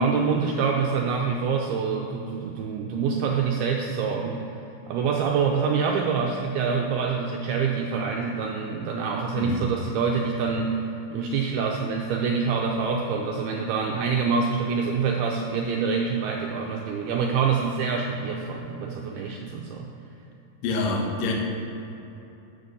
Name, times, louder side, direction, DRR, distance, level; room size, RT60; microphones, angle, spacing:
voice 1, 0.0-4.4 4.9-19.9, right 5 dB, 90° right, 0 dB, 2.3 m, -26 dB
voice 2, 9.3-9.7 20.6-21.3, left 3 dB, 85° left, 0 dB, 1.5 m, -26 dB
9.4 x 7.4 x 6.8 m, 3.0 s
omnidirectional pair, 5.2 m